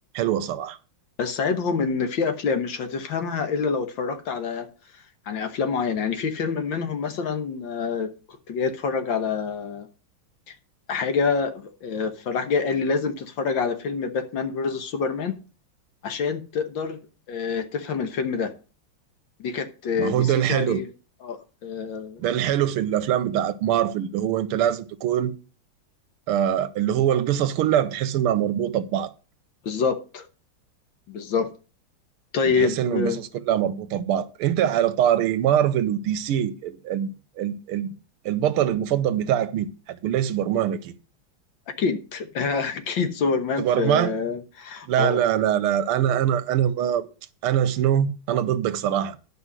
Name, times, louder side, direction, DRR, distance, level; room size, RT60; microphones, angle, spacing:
voice 1, 0.1-0.8 20.0-20.8 22.2-25.3 26.3-29.1 32.5-37.9 38.2-40.9 43.6-44.1 44.9-47.1 47.4-49.2, right 10 dB, 85° right, 1.7 m, -23 dB
voice 2, 1.2-4.7 5.3-8.1 8.5-9.9 10.5-10.6 10.9-15.3 16.0-17.0 17.3-18.5 19.4-20.9 21.2-22.2 29.6-30.3 31.1-31.5 32.3-33.2 41.8-45.2 46.1-46.2, left 5 dB, 65° left, 1.7 m, -26 dB
11.0 x 5.6 x 6.1 m
omnidirectional pair, 2.4 m